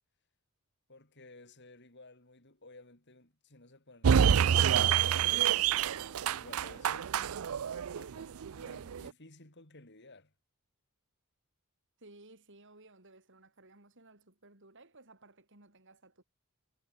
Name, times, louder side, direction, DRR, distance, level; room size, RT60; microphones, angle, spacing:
voice 1, 0.9-7.1 8.0-10.3, left 2 dB, 50° left, 4.8 m, -56 dB
sound 1, 4.0-9.1, right 8 dB, 70° right, 0.5 m, -27 dB
voice 2, 12.0-16.2, right 2 dB, 55° right, 6.0 m, -58 dB
head